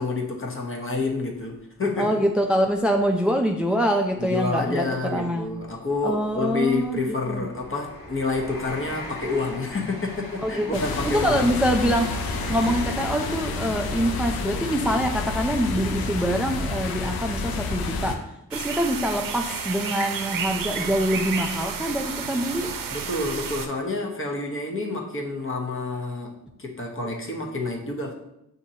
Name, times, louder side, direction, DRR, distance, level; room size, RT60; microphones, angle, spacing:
voice 1, 0.0-2.1 4.2-11.6 22.9-28.1, left 3 dB, 35° left, 0 dB, 1.0 m, -28 dB
sound 1, 1.1-1.2 1.6-1.7 2.9-3.0 3.3-3.5 4.2-16.9 17.4-17.6, left 1 dB, 65° left, 1.3 m, -42 dB
voice 2, 2.0-5.5 6.0-7.5 10.4-12.1 12.5-22.7, equal, 5° right, 2 dB, 0.3 m, -25 dB
sound 2, 10.7-18.2, left 3 dB, 90° left, 0.6 m, -29 dB
sound 3, 18.5-23.7, right 6 dB, 65° right, 0.6 m, -31 dB
5.9 x 2.7 x 2.7 m, 0.85 s
cardioid pair, 50°, 35 cm